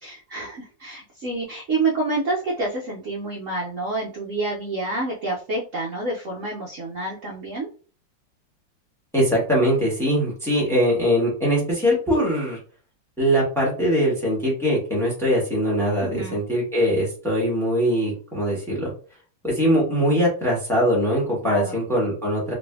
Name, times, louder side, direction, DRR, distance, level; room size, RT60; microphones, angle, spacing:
voice 1, 0.0-7.7 16.0-16.4 21.4-21.8, right 2 dB, 75° right, -4 dB, 0.7 m, -28 dB
voice 2, 9.1-12.6 13.2-18.9 19.4-22.5, equal, 5° left, -4 dB, 0.5 m, -22 dB
3.2 x 2.6 x 2.2 m, 0.39 s
omnidirectional pair, 2.2 m